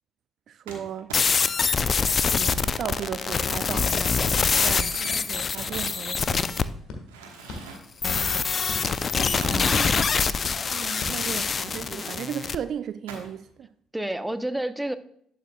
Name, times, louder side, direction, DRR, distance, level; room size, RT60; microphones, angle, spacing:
voice 1, 0.5-1.1 2.3-6.6 9.2-9.9 10.7-13.7, right 9 dB, 60° right, 0.3 m, -36 dB
Crumpling crinkling, 0.7-6.7 7.1-8.1 8.8-12.4 13.1-13.5, right 4 dB, 85° right, 1.2 m, -44 dB
sound 1, 1.1-6.6 8.0-12.6, left 5 dB, 45° left, 0.4 m, -25 dB
sound 2, 5.8-12.0, left 2 dB, 70° left, 1.4 m, -42 dB
voice 2, 9.4-9.9 13.9-14.9, right 1 dB, 10° right, 0.7 m, -30 dB
11.0 x 6.3 x 2.2 m
hypercardioid pair, 50°, 0 cm